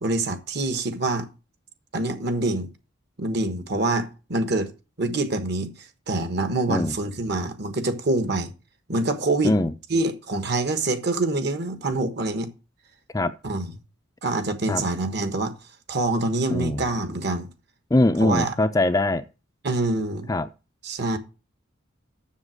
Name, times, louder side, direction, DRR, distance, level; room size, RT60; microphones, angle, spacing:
voice 1, 0.0-1.3 1.9-2.7 3.2-4.7 5.0-5.7 6.1-8.5 8.9-9.5 9.9-12.5 13.4-13.7 14.2-15.5 15.9-17.5 18.2-18.5 19.6-20.3 20.8-21.2, right 2 dB, 55° right, 1.4 m, -25 dB
voice 2, 16.5-16.8 17.9-19.2 20.3-20.5, left 2 dB, 15° left, 0.4 m, -22 dB
7.4 x 7.1 x 6.3 m
head